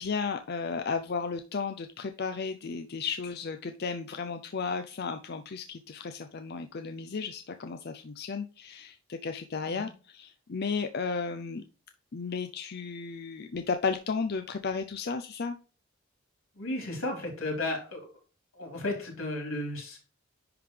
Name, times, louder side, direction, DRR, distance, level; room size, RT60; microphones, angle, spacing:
voice 1, 0.0-11.6 12.1-15.6, left 5 dB, 50° left, 7 dB, 0.5 m, -34 dB
voice 2, 16.6-18.1 18.5-20.0, left 2 dB, 85° left, 1 dB, 4.0 m, -34 dB
10.5 x 3.7 x 3.3 m, 0.35 s
head